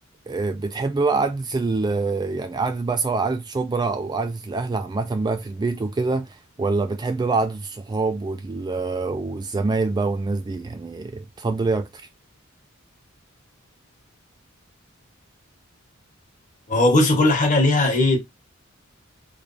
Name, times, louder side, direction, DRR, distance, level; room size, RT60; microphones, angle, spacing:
voice 1, 0.3-11.9, right 3 dB, 20° right, 0.3 m, -25 dB
voice 2, 16.7-18.2, left 2 dB, 40° left, 1.2 m, -18 dB
3.2 x 2.3 x 3.9 m
head